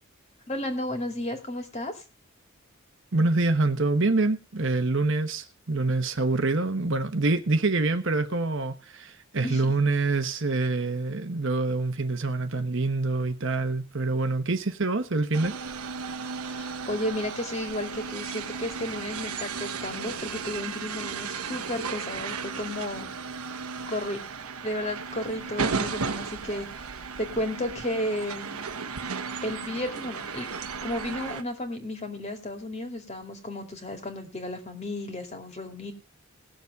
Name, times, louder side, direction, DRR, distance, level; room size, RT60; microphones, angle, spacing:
voice 1, 0.5-2.0 9.4-9.6 16.5-23.1 23.9-24.2 24.6-26.9 27.2-28.5 29.4-30.5 30.8-35.9, left 1 dB, 30° left, 2.4 m, -33 dB
voice 2, 3.1-15.5, right 3 dB, 55° right, 1.1 m, -26 dB
sound 1, 15.3-31.4, right 5 dB, 90° right, 1.1 m, -35 dB
18.5 x 7.1 x 4.8 m
head